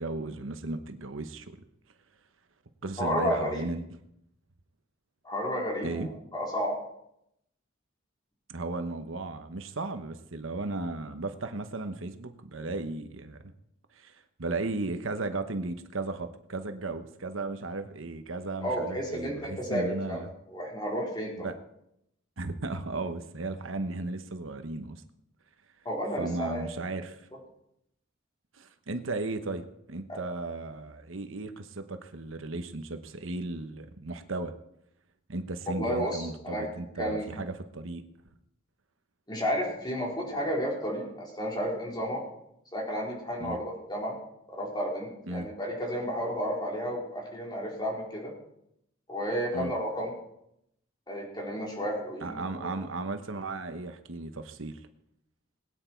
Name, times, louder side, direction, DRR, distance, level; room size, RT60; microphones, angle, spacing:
voice 1, 0.0-1.6 2.8-3.9 5.8-6.1 8.5-13.4 13.9-20.3 21.4-21.6 22.4-25.0 26.2-27.3 28.5-34.5 35.3-38.0 43.4-43.6 45.3-45.5 49.5-49.7 52.2-54.8, right 2 dB, 75° right, 8 dB, 1.1 m, -35 dB
voice 2, 3.0-3.6 5.2-6.8 18.6-21.5 25.8-26.6 30.1-30.2 35.8-36.7 37.0-37.3 39.3-42.2 42.7-44.2 44.5-48.3 49.1-50.1 51.1-52.7, equal, 20° left, -2 dB, 4.0 m, -32 dB
20.5 x 9.3 x 4.6 m, 0.77 s
head